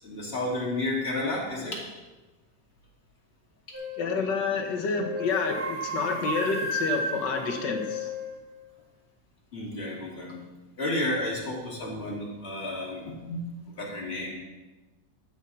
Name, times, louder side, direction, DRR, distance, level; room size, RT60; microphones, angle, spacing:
voice 1, 0.0-1.8 9.5-10.4 10.8-13.4 13.8-14.3, left 1 dB, 35° left, -5 dB, 2.9 m, -31 dB
sound 1, 3.7-4.1 4.9-8.4, equal, 50° right, 3.4 m, -33 dB
voice 2, 4.0-8.1, left 4 dB, 80° left, 3 dB, 2.0 m, -29 dB
12.5 x 8.2 x 4.2 m, 1.1 s
omnidirectional pair, 1.9 m